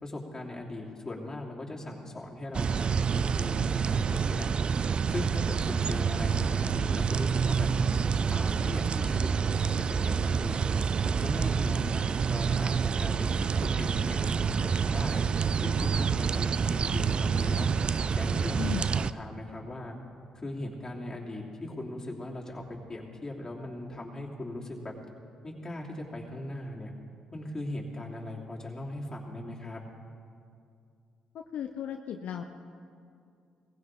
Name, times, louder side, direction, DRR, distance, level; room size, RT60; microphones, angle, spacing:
voice 1, 0.0-4.5 5.1-7.7 8.3-10.6 11.0-14.5 14.8-15.2 15.6-17.7 18.1-20.0 20.3-22.6 22.9-24.9 25.4-26.9 27.3-29.8, left 1 dB, 25° left, -3 dB, 3.0 m, -39 dB
sound 1, 2.5-19.1, right 6 dB, 45° right, 0.4 m, -27 dB
voice 2, 18.6-18.9 31.3-32.4, left 9 dB, 70° left, 4 dB, 0.7 m, -35 dB
19.0 x 15.5 x 3.8 m, 2.4 s
supercardioid pair, 65°, 2 cm